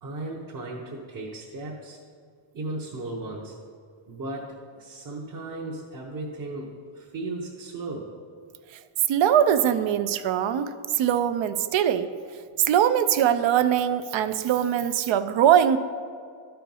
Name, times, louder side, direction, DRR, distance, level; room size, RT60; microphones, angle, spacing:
voice 1, 0.0-2.0 2.5-3.6 4.1-8.1, right 2 dB, 40° right, -2 dB, 0.9 m, -36 dB
voice 2, 9.1-12.1 12.7-15.8, right 10 dB, 65° right, 12 dB, 0.6 m, -22 dB
13.0 x 4.5 x 5.4 m, 2.1 s
wide cardioid pair, 180°, 48 cm